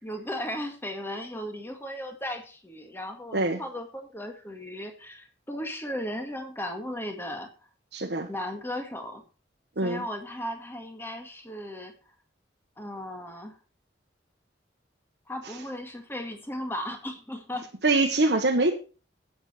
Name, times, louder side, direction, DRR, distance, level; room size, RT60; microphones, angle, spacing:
voice 1, 0.0-7.5 8.3-9.2 9.8-11.9 12.8-13.6 15.3-17.7, left 1 dB, 10° left, 5 dB, 1.7 m, -36 dB
voice 2, 7.9-8.3 9.8-10.0 17.8-18.7, right 2 dB, 65° right, 1 dB, 1.2 m, -23 dB
11.0 x 8.9 x 4.4 m, 0.36 s
head